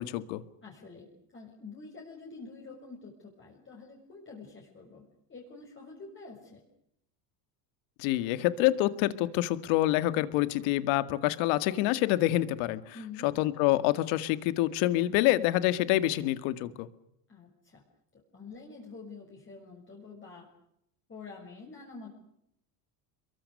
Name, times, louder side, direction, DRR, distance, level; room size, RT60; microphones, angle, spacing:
voice 1, 0.0-0.4 8.0-12.9 13.2-16.9, left 15 dB, 75° left, 14 dB, 2.0 m, -27 dB
voice 2, 0.6-6.6 12.9-13.3 17.3-17.8 18.3-20.5 21.1-22.1, left 4 dB, 25° left, -2 dB, 6.7 m, -47 dB
28.0 x 23.0 x 6.7 m, 0.77 s
cardioid pair, 120°, 48 cm